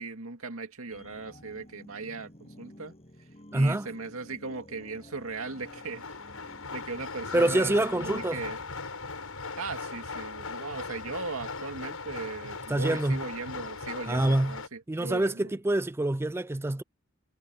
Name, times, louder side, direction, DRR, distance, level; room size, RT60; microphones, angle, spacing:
voice 1, 0.0-2.9 3.5-6.0 6.7-8.6 9.6-15.5, right 4 dB, 80° right, 2.3 m, -38 dB
sound 1, 0.9-11.9 12.3-12.4, left 1 dB, 30° left, 8.0 m, -54 dB
voice 2, 3.5-3.9 7.3-8.4 12.7-13.2 14.1-14.6 14.9-16.8, right 1 dB, 10° right, 0.4 m, -26 dB
sound 2, 5.3-14.7, left 4 dB, 85° left, 6.0 m, -39 dB
head